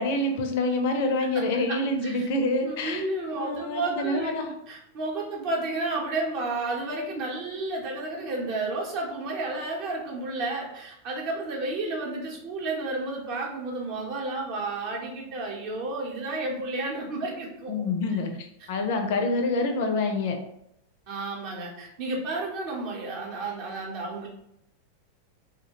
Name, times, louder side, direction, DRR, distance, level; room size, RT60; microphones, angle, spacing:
voice 1, 0.0-3.0 3.4-4.5 17.7-18.3 18.7-20.4, left 2 dB, 50° left, 4 dB, 0.4 m, -26 dB
voice 2, 1.7-2.3 2.6-17.9 21.1-24.3, right 2 dB, 45° right, -2 dB, 0.7 m, -32 dB
2.3 x 2.1 x 2.8 m, 0.80 s
figure-of-eight pair, 90°, 0 cm